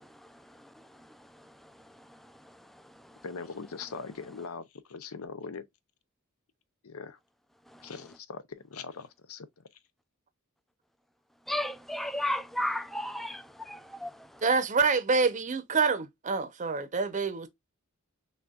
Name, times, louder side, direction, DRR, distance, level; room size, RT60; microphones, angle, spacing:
voice 1, 3.2-5.6 6.8-7.2 7.8-9.5, left 5 dB, 80° left, 0.6 m, -41 dB
voice 2, 11.5-14.1, left 1 dB, ahead, 0.4 m, -33 dB
voice 3, 14.4-17.5, right 4 dB, 35° right, 0.7 m, -26 dB
6.3 x 2.3 x 2.3 m
head